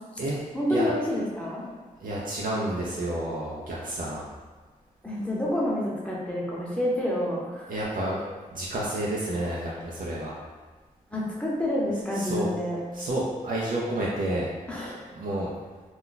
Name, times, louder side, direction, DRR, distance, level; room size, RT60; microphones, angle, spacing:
voice 1, 0.5-1.6 5.0-7.6 11.1-12.8 14.7-15.0, left 1 dB, 10° left, -5 dB, 0.8 m, -28 dB
voice 2, 2.0-4.2 7.7-8.2 8.5-10.3 12.2-12.5 12.9-14.5 15.1-15.5, right 1 dB, 75° right, -6 dB, 0.5 m, -30 dB
2.3 x 2.1 x 3.8 m, 1.4 s
wide cardioid pair, 80°, 14 cm